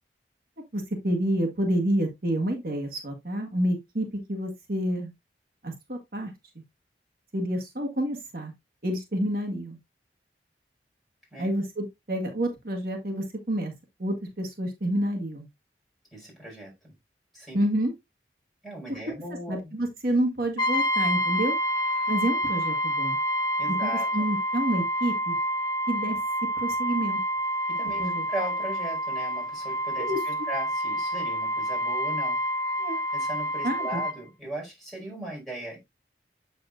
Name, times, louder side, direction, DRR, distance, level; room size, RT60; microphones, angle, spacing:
voice 1, 0.7-5.1 5.6-6.3 7.3-8.5 8.8-9.8 11.4-13.7 14.0-15.5 17.5-17.9 19.5-21.6 22.1-23.2 23.7-25.3 25.9-26.2 26.6-27.2 28.0-28.2 30.0-30.2 32.8-33.0 33.6-34.0, right 1 dB, 55° right, 1.5 m, -28 dB
voice 2, 16.1-16.9 17.3-17.6 18.6-19.6 23.6-24.1 27.7-32.4 33.1-35.8, right 1 dB, ahead, 4.9 m, -38 dB
Brass instrument, 20.6-34.2, equal, 25° left, 1.0 m, -28 dB
7.8 x 6.9 x 2.5 m
head